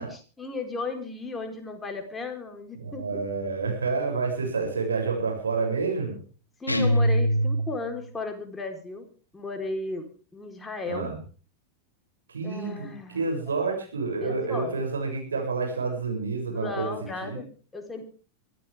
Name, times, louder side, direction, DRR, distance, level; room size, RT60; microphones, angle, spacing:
voice 1, 0.0-3.2 6.6-9.0 9.3-10.1 10.3-11.1 12.4-13.2 14.2-14.7 16.5-18.0, left 3 dB, 15° left, 4 dB, 4.2 m, -35 dB
voice 2, 2.8-6.2 10.9-11.2 12.3-16.9 17.2-17.4, right 4 dB, 70° right, 2 dB, 7.6 m, -29 dB
sound 1, 6.7-8.0, equal, 85° left, 2.1 m, -23 dB
24.5 x 14.0 x 3.6 m, 0.39 s
figure-of-eight pair, 90°, 0 cm